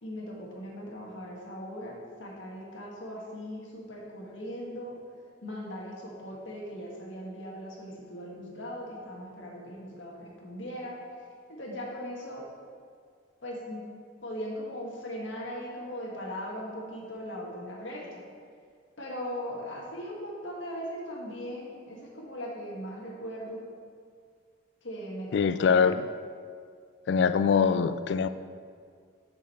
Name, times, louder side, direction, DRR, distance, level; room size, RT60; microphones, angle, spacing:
voice 1, 0.0-5.0 5.4-11.0 11.5-12.5 13.4-13.8 14.2-18.3 19.0-23.7 24.8-26.0, equal, 90° left, -2 dB, 1.7 m, -39 dB
voice 2, 25.3-26.0 27.1-28.3, left 6 dB, 65° left, 13 dB, 0.3 m, -23 dB
7.4 x 6.4 x 4.3 m, 2.1 s
head